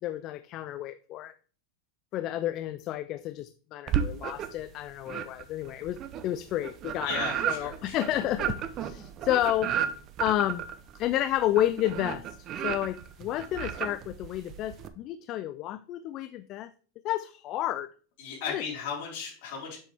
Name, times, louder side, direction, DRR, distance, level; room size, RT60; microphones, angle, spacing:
voice 1, 0.0-1.3 2.1-9.7 10.2-10.6 10.9-12.2 12.6-16.7 17.0-17.9 18.5-18.6, left 13 dB, 35° left, 13 dB, 0.3 m, -31 dB
sound 1, 3.9-4.7 5.1-14.9, right 9 dB, 35° right, 0.6 m, -33 dB
voice 2, 7.0-8.1 18.2-19.8, left 6 dB, 55° left, -3 dB, 4.2 m, -36 dB
7.4 x 6.0 x 3.4 m, 0.42 s
supercardioid pair, 150°, 0 cm